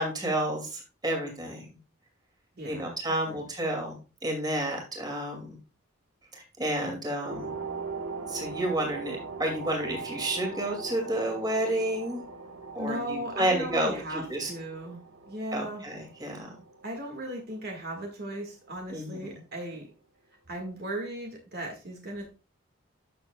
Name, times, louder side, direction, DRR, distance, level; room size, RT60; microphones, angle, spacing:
voice 1, 0.0-1.7 2.6-5.6 6.3-7.5 8.3-12.2 12.7-14.5 15.5-16.5 18.9-19.4, right 1 dB, 20° right, 1 dB, 2.4 m, -30 dB
voice 2, 2.6-2.9 3.3-3.4 12.8-15.0 15.3-15.8 16.8-19.9 20.5-22.3, right 1 dB, 50° right, 1 dB, 1.7 m, -36 dB
sound 1, 7.2-18.2 18.5-18.8, right 4 dB, 85° right, 1.5 m, -41 dB
12.0 x 6.8 x 2.3 m, 0.32 s
head